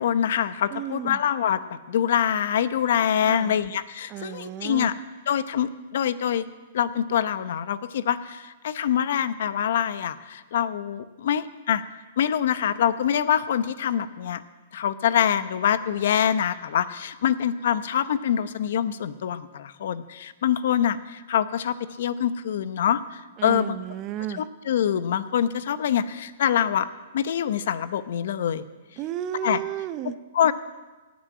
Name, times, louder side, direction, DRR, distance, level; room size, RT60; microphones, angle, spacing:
voice 1, 0.0-4.9 5.3-6.4 6.7-11.8 12.2-14.4 14.7-23.8 24.3-26.9 27.1-28.6 29.4-29.6 30.3-30.5, left 9 dB, 65° left, 14 dB, 0.8 m, -25 dB
voice 2, 0.7-1.2 3.2-3.6 4.1-4.9 23.4-24.4 29.0-30.2, right 12 dB, 35° right, 13 dB, 0.7 m, -32 dB
17.0 x 6.3 x 9.4 m, 1.2 s
hypercardioid pair, 130°, 0 cm